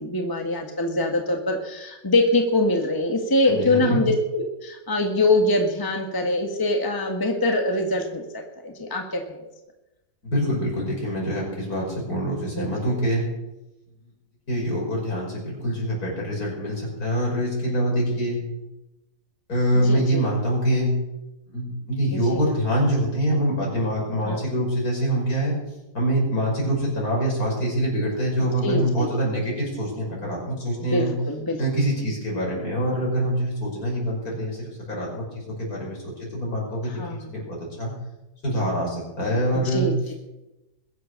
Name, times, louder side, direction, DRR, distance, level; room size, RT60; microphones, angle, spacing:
voice 1, 0.0-8.2 8.6-9.5 12.6-12.7 19.8-20.2 22.1-22.4 24.2-24.5 28.4-29.1 30.8-31.6 36.8-37.2 39.7-40.1, left 2 dB, 15° left, 2 dB, 1.5 m, -24 dB
voice 2, 3.5-4.0 10.2-13.3 14.5-18.4 19.5-20.9 21.5-25.6 25.9-31.1 31.6-37.9 38.4-39.9, equal, 60° left, -2 dB, 6.2 m, -25 dB
21.5 x 8.2 x 6.5 m, 0.98 s
omnidirectional pair, 1.7 m